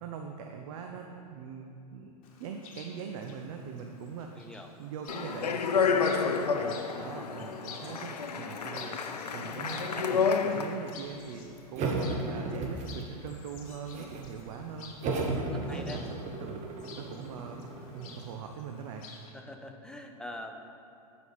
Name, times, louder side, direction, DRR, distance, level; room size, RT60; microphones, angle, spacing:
voice 1, 0.0-4.5 4.8-14.9 15.3-16.0 16.4-16.7 17.0-17.6 17.9-19.1, right 6 dB, 55° right, 3 dB, 0.7 m, -42 dB
Chirp tweet, 2.2-19.3, left 5 dB, 60° left, 1.3 m, -52 dB
voice 2, 4.4-4.7 15.1-16.0 19.3-20.7, left 1 dB, 5° left, 3 dB, 0.6 m, -44 dB
Speech, 5.1-10.9, left 5 dB, 80° left, 0.6 m, -30 dB
sound 1, 11.7-13.3 13.6-14.3 15.0-18.3, right 2 dB, 35° right, 1.2 m, -34 dB
9.1 x 5.3 x 5.6 m, 2.6 s
figure-of-eight pair, 95°, 20 cm